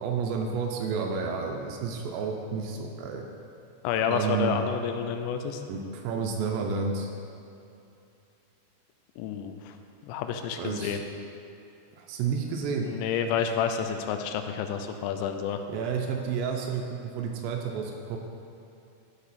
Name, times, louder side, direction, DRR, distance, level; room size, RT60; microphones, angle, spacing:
voice 1, 0.0-3.3 4.1-4.6 5.7-7.1 10.6-11.0 11.9-12.9 15.7-18.2, right 5 dB, 80° right, 2 dB, 2.7 m, -30 dB
voice 2, 3.8-5.6 9.2-9.8 10.1-11.1 12.9-15.6, left 7 dB, 90° left, 6 dB, 3.0 m, -29 dB
13.0 x 5.0 x 4.2 m, 2.7 s
omnidirectional pair, 5.2 m